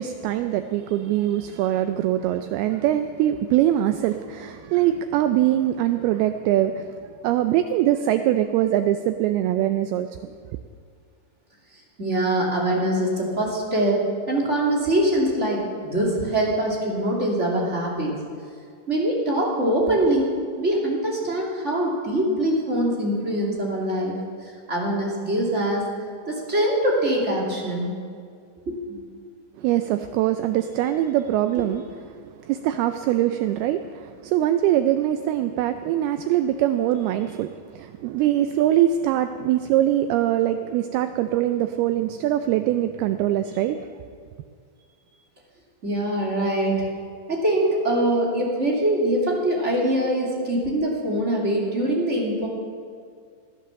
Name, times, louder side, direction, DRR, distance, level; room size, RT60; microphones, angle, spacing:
voice 1, 0.0-10.3 29.6-43.9, right 12 dB, 90° right, 9 dB, 2.2 m, -23 dB
voice 2, 12.0-14.0 14.3-18.1 18.9-24.2 24.4-25.9 26.3-27.9 28.7-29.0 31.6-31.7 45.8-46.9 47.3-52.5, right 1 dB, 20° right, -3 dB, 2.0 m, -23 dB
17.0 x 11.0 x 7.0 m, 2.1 s
omnidirectional pair, 5.1 m